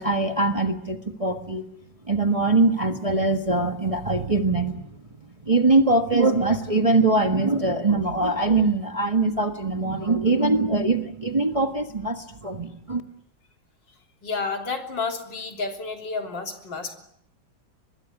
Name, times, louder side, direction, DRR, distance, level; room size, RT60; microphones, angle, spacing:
voice 1, 0.0-1.6 2.0-4.8 5.4-13.0, right 3 dB, 20° right, 6 dB, 1.3 m, -22 dB
voice 2, 14.2-16.9, left 4 dB, 75° left, 4 dB, 4.0 m, -30 dB
25.0 x 21.0 x 9.4 m, 0.74 s
omnidirectional pair, 2.0 m